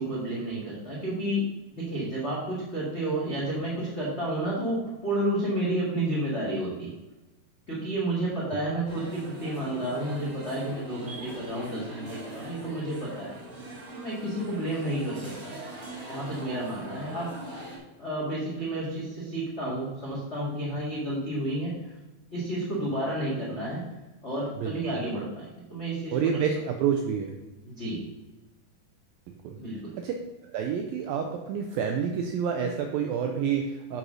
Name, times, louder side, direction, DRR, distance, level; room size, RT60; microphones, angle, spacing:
voice 1, 0.0-6.9 7.7-13.3 13.9-15.5 16.1-17.3 18.0-21.9 22.3-23.8 24.2-26.4 27.6-28.0 29.6-29.9, right 1 dB, 70° left, -6 dB, 0.6 m, -31 dB
sound 1, 8.8-17.8, right 1 dB, 55° right, 0.9 m, -41 dB
voice 2, 26.1-27.3 29.4-29.6 30.0-30.1 30.4-34.0, right 7 dB, 90° right, 3 dB, 2.0 m, -28 dB
8.3 x 4.1 x 6.1 m, 1.0 s
omnidirectional pair, 4.8 m